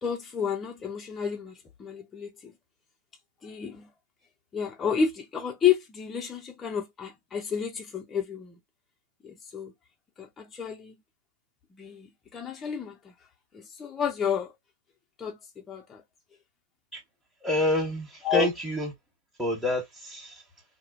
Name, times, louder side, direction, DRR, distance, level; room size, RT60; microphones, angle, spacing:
voice 1, 0.0-2.5 3.4-3.9 4.5-8.6 9.2-9.7 10.2-11.0 11.7-13.1 13.5-14.5 15.2-16.0 18.2-18.5, left 7 dB, 20° left, 0.6 m, -31 dB
voice 2, 17.4-18.9 19.4-20.5, left 1 dB, ahead, 1.3 m, -28 dB
3.0 x 2.1 x 2.5 m
hypercardioid pair, 120°, 0 cm